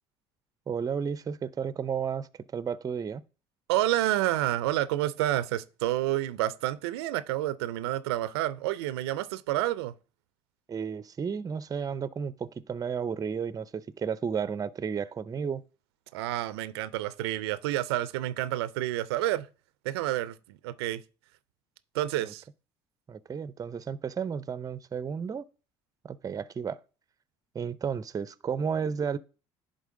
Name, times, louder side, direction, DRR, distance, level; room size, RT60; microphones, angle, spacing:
voice 1, 0.7-3.2 10.7-15.6 22.2-22.3 23.1-25.5 26.0-26.8 27.5-29.2, right 6 dB, 30° right, 0.5 m, -33 dB
voice 2, 3.7-9.9 16.1-19.5 19.8-21.0 21.9-22.4, right 14 dB, 90° right, 0.4 m, -29 dB
10.5 x 3.8 x 3.7 m
hypercardioid pair, 70°, 13 cm